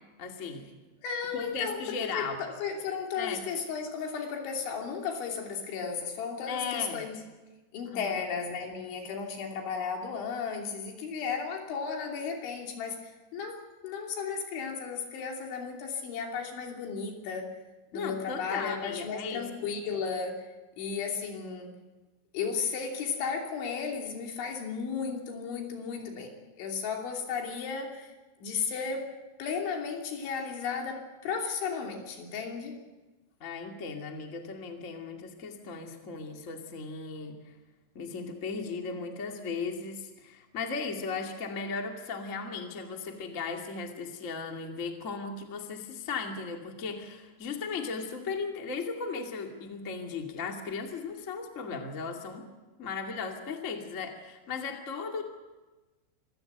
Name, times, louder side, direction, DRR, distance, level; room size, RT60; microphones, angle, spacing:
voice 1, 0.2-0.6 1.3-2.4 3.2-3.4 6.5-7.1 7.8-8.1 17.9-19.5 33.4-37.4 37.9-52.4 52.8-55.2, left 5 dB, 35° left, 2 dB, 1.2 m, -36 dB
voice 2, 1.0-1.8 2.1-7.2 7.7-17.5 17.9-20.5 20.8-21.7 22.3-28.1 28.4-29.1 29.4-32.7, left 6 dB, 75° left, 1 dB, 5.2 m, -34 dB
25.5 x 16.0 x 8.1 m, 1.2 s
omnidirectional pair, 5.5 m